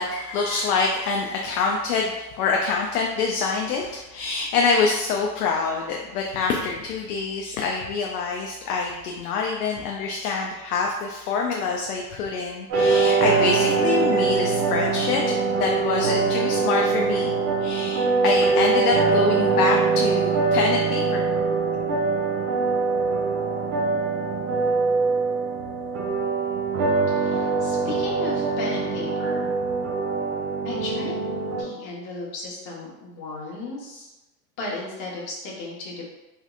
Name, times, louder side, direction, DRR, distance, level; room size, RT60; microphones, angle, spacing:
voice 1, 0.0-17.3 17.6-21.3, left 4 dB, 65° left, 0 dB, 0.6 m, -25 dB
sound 1, 12.7-31.6, right 4 dB, 30° right, 1.0 m, -23 dB
voice 2, 27.1-29.5 30.6-31.2 31.6-34.1 34.6-36.0, left 3 dB, 40° left, -4 dB, 1.3 m, -35 dB
3.4 x 3.1 x 2.4 m, 1.0 s
hypercardioid pair, 110°, 50 cm